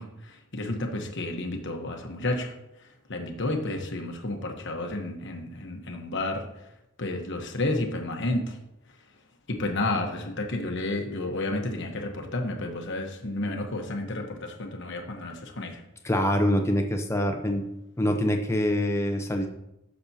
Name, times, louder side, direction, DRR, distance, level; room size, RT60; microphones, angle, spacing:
voice 1, 0.0-6.7 7.0-8.6 9.5-15.8, left 2 dB, 55° left, 3 dB, 1.1 m, -31 dB
voice 2, 16.0-17.7 18.0-19.5, equal, 10° left, 4 dB, 0.8 m, -25 dB
10.5 x 6.7 x 2.8 m, 0.86 s
head